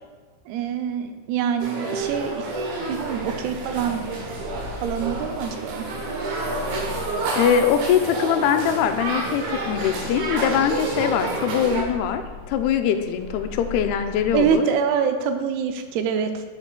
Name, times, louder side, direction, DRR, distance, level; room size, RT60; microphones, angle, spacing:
voice 1, 0.5-2.5 2.9-4.0 4.8-5.9 14.3-16.4, right 7 dB, 90° right, 7 dB, 2.6 m, -25 dB
sound 1, 1.6-11.8, right 2 dB, 70° right, 1.9 m, -29 dB
sound 2, 1.9-14.5, left 4 dB, 55° left, 2.9 m, -39 dB
voice 2, 7.4-14.7, left 8 dB, 90° left, 7 dB, 2.5 m, -22 dB
9.7 x 7.1 x 2.2 m, 1.4 s
omnidirectional pair, 4.4 m